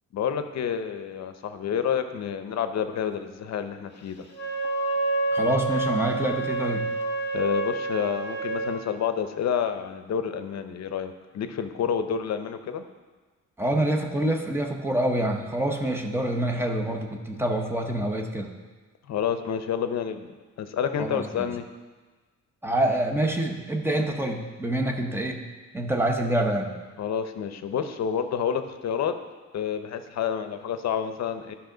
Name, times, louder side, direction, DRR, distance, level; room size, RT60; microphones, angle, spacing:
voice 1, 0.1-4.2 7.3-12.9 19.1-20.3 20.6-21.7 27.0-29.1 29.5-31.5, left 8 dB, 60° left, 9 dB, 0.7 m, -29 dB
Wind instrument woodwind instrument, 4.3-8.8, right 2 dB, 35° left, 1.3 m, -28 dB
voice 2, 5.3-6.9 13.6-18.5 21.0-21.5 22.6-25.4 25.7-26.7, right 1 dB, 10° right, 2 dB, 0.8 m, -26 dB
13.0 x 5.6 x 3.9 m, 1.3 s
wide cardioid pair, 145°, 30 cm